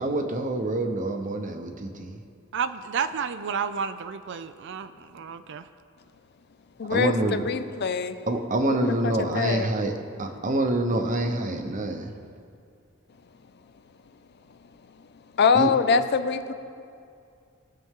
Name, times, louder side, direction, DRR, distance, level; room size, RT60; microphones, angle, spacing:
voice 1, 0.0-2.2 6.9-7.4 8.3-9.9 10.2-12.1 15.5-15.7, right 2 dB, 40° right, 5 dB, 0.9 m, -26 dB
voice 2, 2.5-5.7, right 6 dB, 60° right, 10 dB, 0.4 m, -31 dB
voice 3, 6.8-8.2 8.7-9.7 15.4-16.5, left 5 dB, 55° left, 11 dB, 0.5 m, -24 dB
19.5 x 6.9 x 3.7 m, 2.4 s
head